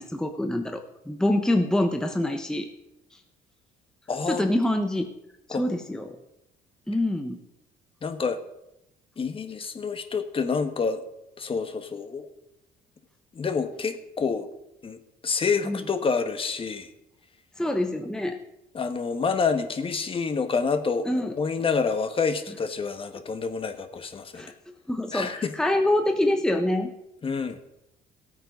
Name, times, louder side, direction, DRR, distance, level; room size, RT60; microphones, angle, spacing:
voice 1, 0.0-2.7 4.3-5.1 5.6-6.2 6.9-7.4 15.6-15.8 17.6-18.4 21.0-21.3 24.3-24.5 24.9-26.9, left 1 dB, 5° left, 5 dB, 1.0 m, -25 dB
voice 2, 4.1-4.5 5.5-6.0 8.0-8.4 9.2-11.0 11.4-12.3 13.3-14.5 14.8-16.9 18.7-24.4 25.1-25.5 27.2-27.6, left 5 dB, 35° left, 8 dB, 1.4 m, -28 dB
16.0 x 8.9 x 5.3 m, 0.86 s
cardioid pair, 110°, 17 cm